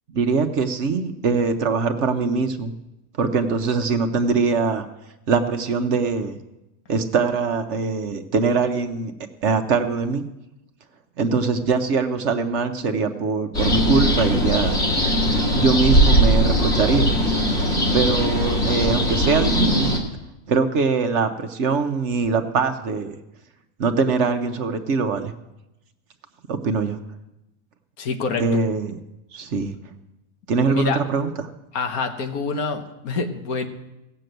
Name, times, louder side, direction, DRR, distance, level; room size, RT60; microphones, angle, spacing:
voice 1, 0.1-2.7 3.2-4.8 5.3-6.4 6.9-9.1 9.4-10.2 11.2-14.7 15.5-17.1 17.9-19.9 20.5-23.2 23.8-25.3 26.5-27.0 28.4-29.0 29.3-29.8 30.5-31.3, right 4 dB, 55° right, 7 dB, 1.1 m, -22 dB
sound 1, 13.5-20.0, equal, 55° left, 2.3 m, -20 dB
voice 2, 28.0-28.4 30.7-31.0 31.7-33.7, left 4 dB, 90° left, 6 dB, 1.6 m, -26 dB
17.0 x 6.8 x 7.9 m, 0.94 s
omnidirectional pair, 1.5 m